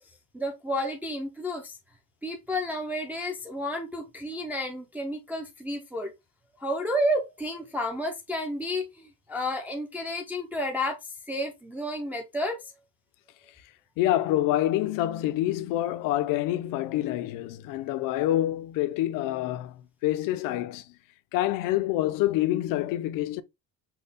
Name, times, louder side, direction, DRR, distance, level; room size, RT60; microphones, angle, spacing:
voice 1, 0.3-1.8 2.2-6.1 6.5-12.7, equal, 5° right, 0.4 m, -31 dB
voice 2, 14.0-20.8 21.3-23.4, left 14 dB, 60° left, 0.5 m, -27 dB
5.5 x 2.2 x 4.0 m
cardioid pair, 180°, 38 cm